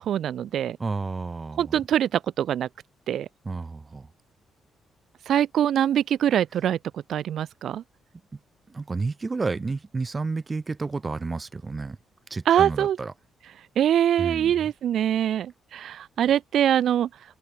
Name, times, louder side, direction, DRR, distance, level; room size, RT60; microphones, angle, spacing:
voice 1, 0.0-0.8 1.6-2.7 3.1-3.3 5.3-6.8 7.1-7.8 12.5-13.0 13.8-17.1, right 10 dB, 60° right, 4.4 m, -23 dB
voice 2, 0.8-1.8 3.4-4.1 8.3-8.4 8.7-12.0 12.3-13.1 14.2-14.7, right 3 dB, 20° right, 5.9 m, -31 dB
open air
cardioid pair, 150°, 0 cm